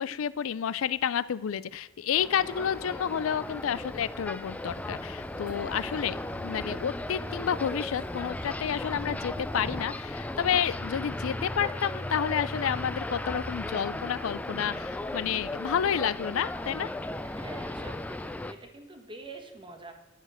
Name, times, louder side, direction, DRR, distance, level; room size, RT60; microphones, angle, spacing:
voice 1, 0.0-16.9, left 8 dB, 90° left, 18 dB, 0.4 m, -30 dB
sound 1, 2.1-18.5, left 1 dB, 5° left, 0.3 m, -36 dB
sound 2, 4.6-10.6 12.1-13.7, equal, 40° left, 1.4 m, -47 dB
voice 2, 17.2-19.9, right 2 dB, 25° right, 4 dB, 1.4 m, -46 dB
10.0 x 6.5 x 6.3 m, 1.2 s
head